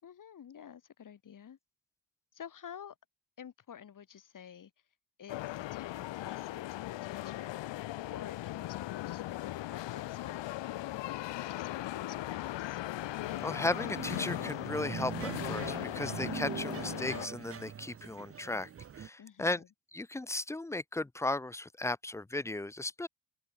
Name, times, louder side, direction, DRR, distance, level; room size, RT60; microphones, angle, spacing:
voice 1, 0.0-1.6 2.3-3.0 3.4-4.7 5.2-7.6 8.1-12.8 19.2-19.7, left 8 dB, 45° left, 4.4 m, -50 dB
sound 1, 5.3-17.3, left 16 dB, 70° left, 0.9 m, -38 dB
sound 2, 13.2-19.1, right 8 dB, 30° right, 0.9 m, -42 dB
voice 2, 13.4-18.7 19.0-19.6 19.9-23.1, left 2 dB, 5° left, 0.4 m, -36 dB
open air
cardioid pair, 165°, 45 cm